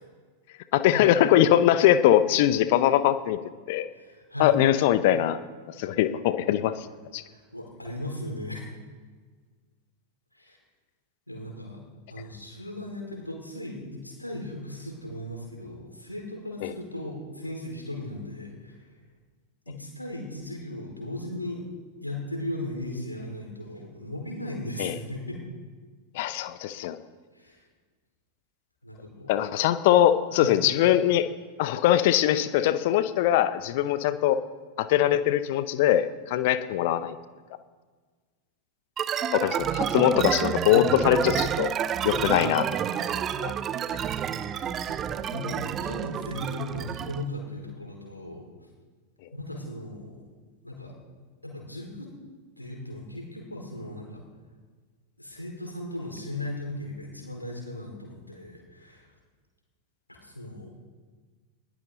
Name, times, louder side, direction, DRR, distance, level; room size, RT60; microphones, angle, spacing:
voice 1, 0.7-3.4 3.7-3.9 4.4-5.4 5.8-6.9 7.1-7.2 16.6-16.7 24.8-25.0 26.1-27.0 29.3-31.3 31.6-34.4 34.8-37.2 39.3-41.7 42.0-42.7 43.4-43.5, left 12 dB, 50° left, 13 dB, 0.8 m, -22 dB
voice 2, 3.9-4.6 7.2-8.6 10.3-10.6 11.3-11.8 12.1-18.9 19.6-21.6 22.0-25.4 27.3-27.7 28.8-29.3 30.3-30.6 40.6-41.0 44.3-48.5 49.3-50.2 50.6-51.0 51.4-52.1 52.6-54.3 55.2-59.1 60.1-60.7, left 1 dB, 85° left, -1 dB, 4.8 m, -37 dB
sound 1, 39.0-47.2, right 9 dB, 30° right, 0.7 m, -29 dB
20.5 x 17.0 x 4.0 m, 1.5 s
figure-of-eight pair, 90°, 0 cm